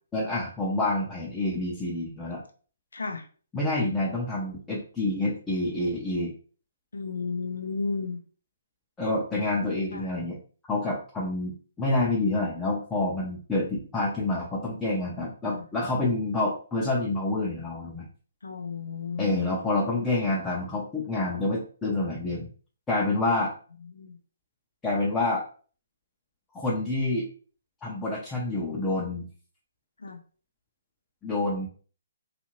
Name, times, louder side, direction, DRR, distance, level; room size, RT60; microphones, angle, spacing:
voice 1, 0.1-2.4 3.5-6.3 9.0-10.4 10.7-18.1 19.2-22.5 22.9-23.5 24.8-25.4 26.5-27.3 27.8-29.3 31.2-31.7, left 2 dB, 10° left, -6 dB, 0.6 m, -28 dB
voice 2, 2.9-3.3 6.9-8.2 9.9-10.0 15.4-15.6 18.4-19.5 23.9-24.2 30.0-30.2, left 4 dB, 85° left, 6 dB, 0.4 m, -33 dB
2.7 x 2.4 x 2.9 m, 0.41 s
hypercardioid pair, 145°, 0 cm